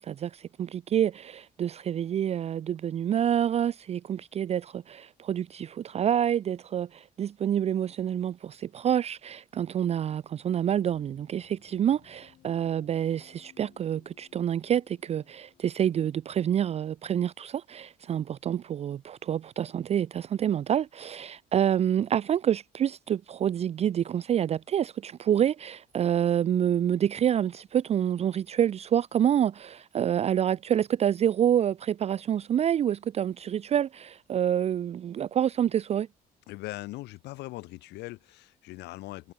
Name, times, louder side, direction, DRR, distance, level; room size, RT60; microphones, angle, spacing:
voice 1, 0.0-36.1, right 9 dB, 40° right, 0.4 m, -27 dB
sound 1, 10.7-17.2, left 11 dB, 60° left, 8.0 m, -61 dB
voice 2, 36.5-39.3, left 19 dB, 85° left, 1.5 m, -40 dB
cardioid pair, 110°, 17 cm